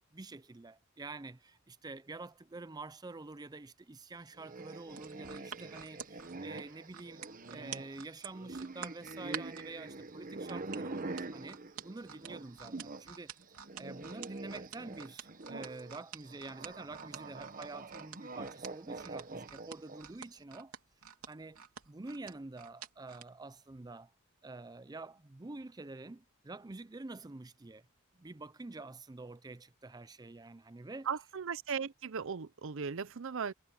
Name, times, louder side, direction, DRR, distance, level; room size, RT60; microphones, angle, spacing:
voice 1, 0.0-7.2 7.5-13.3 13.8-20.7 21.3-24.1 24.4-27.9 28.1-31.1, right 3 dB, 20° right, 0.5 m, -47 dB
sound 1, 4.4-13.1 13.4-20.2, right 3 dB, 40° right, 1.2 m, -45 dB
sound 2, 4.9-9.7 10.5-23.3 23.7-23.9, right 8 dB, 85° right, 3.3 m, -47 dB
voice 2, 31.1-33.5, right 6 dB, 60° right, 0.6 m, -37 dB
head